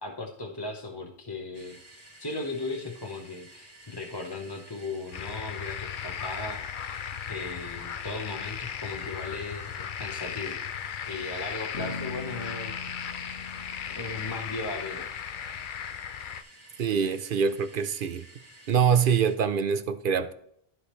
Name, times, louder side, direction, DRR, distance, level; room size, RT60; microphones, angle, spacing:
voice 1, 0.0-7.0 7.3-10.6 11.1-13.1 13.9-15.1, left 3 dB, 25° left, 0.8 m, -37 dB
sound 1, 1.5-19.4, right 1 dB, 80° right, 2.3 m, -53 dB
sound 2, 5.1-16.4, left 8 dB, 55° left, 0.6 m, -36 dB
Bass guitar, 11.7-15.8, left 3 dB, 75° left, 1.8 m, -42 dB
voice 2, 16.8-18.3 18.7-20.3, right 7 dB, 60° right, 0.7 m, -24 dB
14.0 x 5.0 x 3.2 m
omnidirectional pair, 1.1 m